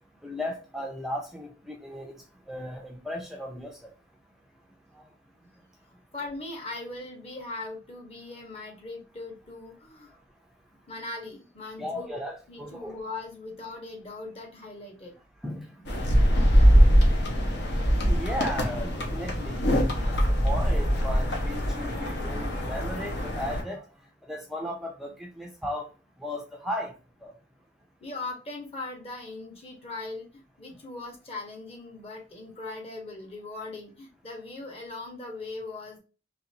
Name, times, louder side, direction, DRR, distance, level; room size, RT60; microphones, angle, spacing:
voice 1, 0.2-3.9 4.9-5.1 11.8-13.0 15.4-16.0 18.1-23.8 24.3-25.9 26.2-26.9 27.2-27.3, left 1 dB, ahead, 0.5 m, -36 dB
voice 2, 6.1-10.2 10.9-12.2 12.5-15.1 28.0-36.0, left 2 dB, 30° left, 1.3 m, -39 dB
sound 1, 15.9-23.6, equal, 60° left, 1.1 m, -23 dB
4.0 x 3.3 x 2.8 m
head